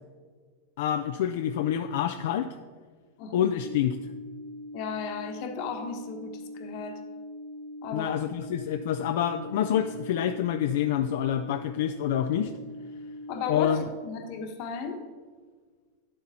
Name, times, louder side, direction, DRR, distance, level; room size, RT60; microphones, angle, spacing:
voice 1, 0.8-2.5 3.3-4.0 7.9-12.5 13.5-13.8, left 10 dB, 65° left, 7 dB, 0.4 m, -27 dB
sound 1, 3.6-13.6, left 1 dB, 30° right, 1.3 m, -41 dB
voice 2, 4.7-7.0 7.8-8.2 13.3-15.0, left 5 dB, 45° left, 5 dB, 1.3 m, -35 dB
10.5 x 7.7 x 4.3 m, 1.5 s
supercardioid pair, 160°, 0 cm